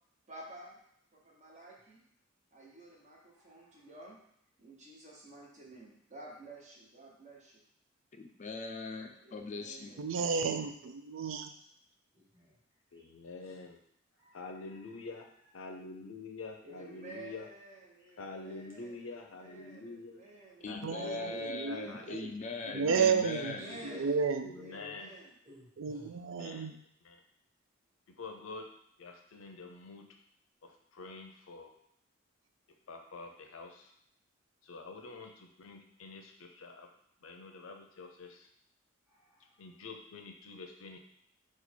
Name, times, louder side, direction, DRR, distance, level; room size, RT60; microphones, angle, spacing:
voice 1, 0.3-0.8 1.1-2.0 2.5-4.2 4.6-7.6 9.2-10.1 16.6-21.3 21.7-22.0 23.0-24.2 24.6-25.3, right 2 dB, 35° right, -2 dB, 1.0 m, -52 dB
voice 2, 3.3-3.9 9.4-10.5 12.1-12.6 12.9-13.1 13.4-13.5 14.1-14.7 17.9-18.1 22.5-24.1 24.5-25.0 25.4-26.2 36.4-36.6 39.1-39.7, left 1 dB, 15° right, -7 dB, 1.4 m, -53 dB
voice 3, 8.1-10.0 20.6-23.8, left 3 dB, 40° left, 4 dB, 0.4 m, -40 dB
voice 4, 10.0-11.5 20.8-22.3 22.6-24.5 25.8-26.8, right 5 dB, 70° right, 7 dB, 0.4 m, -32 dB
voice 5, 12.9-13.8 14.3-15.2 15.5-17.5 18.2-20.2 20.7-23.0 24.4-25.1 26.3-26.7 27.0-27.2 28.2-28.7 29.0-30.1 30.6-31.7 32.9-33.9 34.6-36.9 37.2-38.5 39.6-41.0, left 3 dB, 90° left, 3 dB, 0.6 m, -47 dB
4.1 x 2.4 x 4.4 m, 0.72 s
head